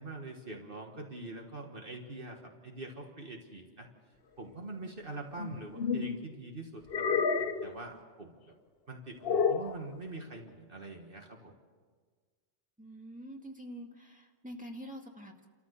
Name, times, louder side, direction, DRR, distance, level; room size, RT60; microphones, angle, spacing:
voice 1, 0.0-3.9 4.4-8.4 8.9-11.5, right 2 dB, 55° right, 2 dB, 1.8 m, -44 dB
sound 1, 5.4-6.2 6.9-7.7 9.2-9.8, left 5 dB, 60° left, 1.1 m, -30 dB
voice 2, 12.8-15.5, equal, 5° right, 0 dB, 2.1 m, -46 dB
28.5 x 14.0 x 6.7 m, 1.5 s
omnidirectional pair, 1.1 m